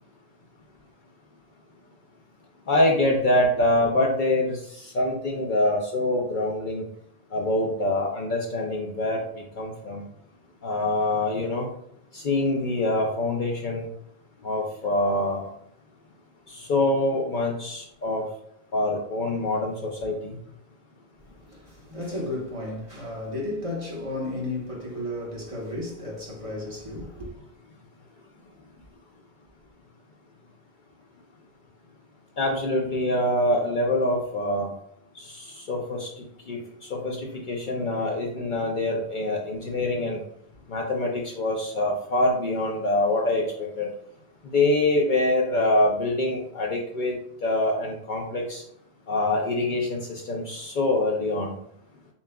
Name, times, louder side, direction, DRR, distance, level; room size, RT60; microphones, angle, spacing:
voice 1, 2.7-4.6 4.9-6.8 7.3-9.2 9.6-10.0 10.6-11.7 12.1-13.9 14.4-15.5 16.5-18.2 18.7-20.2 32.4-34.7 35.2-36.1 36.5-36.6 36.9-40.2 40.7-43.9 44.5-47.1 47.4-48.6 49.1-51.6, left 2 dB, 55° left, 0.7 m, -25 dB
voice 2, 21.4-27.3, left 1 dB, 35° right, 1.0 m, -33 dB
6.9 x 2.3 x 2.2 m
omnidirectional pair, 1.1 m